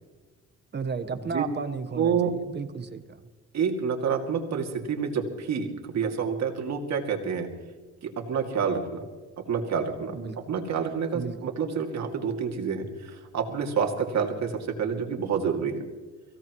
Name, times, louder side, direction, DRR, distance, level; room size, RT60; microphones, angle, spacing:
voice 1, 0.7-3.2 10.0-10.4 11.1-11.5, right 5 dB, 35° right, 9 dB, 1.2 m, -34 dB
voice 2, 2.0-2.3 3.5-7.5 8.0-9.0 9.4-10.2 10.5-12.9 13.3-15.8, right 6 dB, 60° right, 2 dB, 2.5 m, -28 dB
23.5 x 16.5 x 3.1 m, 1.3 s
cardioid pair, 90°, 30 cm